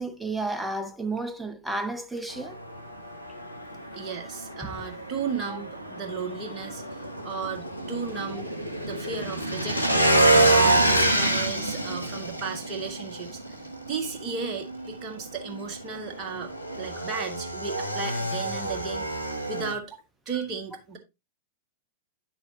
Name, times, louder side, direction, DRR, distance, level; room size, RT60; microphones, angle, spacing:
voice 1, 0.0-2.5 4.6-4.7 16.9-17.0, right 2 dB, 5° right, 0.9 m, -32 dB
Motorcycle / Engine, 2.3-19.7, right 1 dB, 90° left, 1.0 m, -27 dB
voice 2, 3.9-8.5 8.9-10.1 10.4-13.6 13.9-19.9 20.3-21.0, right 5 dB, 30° right, 1.9 m, -35 dB
9.5 x 6.9 x 2.8 m
figure-of-eight pair, 95°, 0 cm